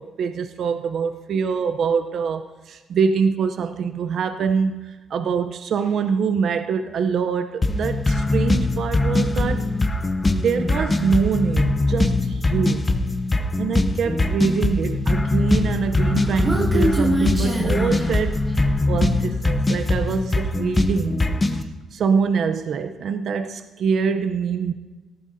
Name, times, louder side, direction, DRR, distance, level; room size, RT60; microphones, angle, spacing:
voice 1, 0.0-9.7 10.3-12.9 13.6-18.4 18.9-21.2 21.5-21.6 21.9-24.7, right 6 dB, 65° right, 8 dB, 0.6 m, -24 dB
sound 1, 7.6-21.6, left 2 dB, 25° left, 0.8 m, -22 dB
Human voice, 15.9-18.9, right 1 dB, 15° right, 2.7 m, -25 dB
18.5 x 14.0 x 2.7 m, 1.2 s
cardioid pair, 90°, 0 cm